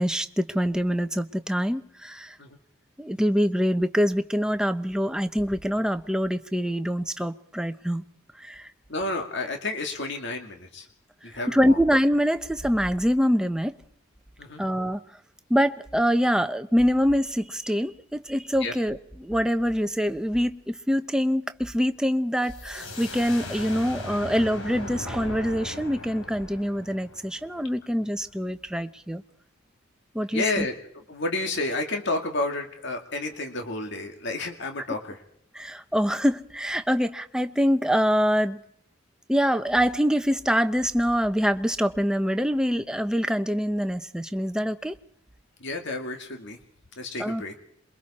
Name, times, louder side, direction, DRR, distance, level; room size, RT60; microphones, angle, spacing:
voice 1, 0.0-2.4 3.0-8.0 8.4-8.7 11.5-13.8 14.6-15.0 15.5-29.2 30.1-30.6 35.5-38.6 39.3-44.9 47.2-47.4, equal, 5° right, 0.9 m, -25 dB
voice 2, 8.9-10.9 11.2-11.8 14.4-14.6 18.6-18.7 30.3-30.7 31.1-35.2 45.6-46.6 47.0-47.5, left 2 dB, 60° left, 2.3 m, -30 dB
sound 1, 22.4-28.0, left 2 dB, 75° left, 3.7 m, -38 dB
27.5 x 23.0 x 4.3 m
head